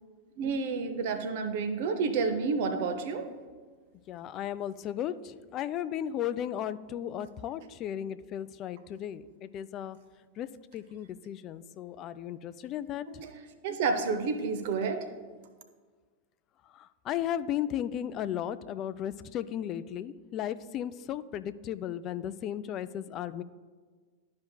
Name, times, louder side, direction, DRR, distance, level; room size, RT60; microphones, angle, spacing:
voice 1, 0.4-3.3 13.1-15.0, right 4 dB, 50° right, 7 dB, 0.6 m, -30 dB
voice 2, 4.1-10.0 10.4-10.5 10.7-13.2 16.7-23.4, left 10 dB, 35° left, 14 dB, 0.3 m, -35 dB
12.0 x 5.2 x 2.2 m, 1.5 s
figure-of-eight pair, 90°, 0 cm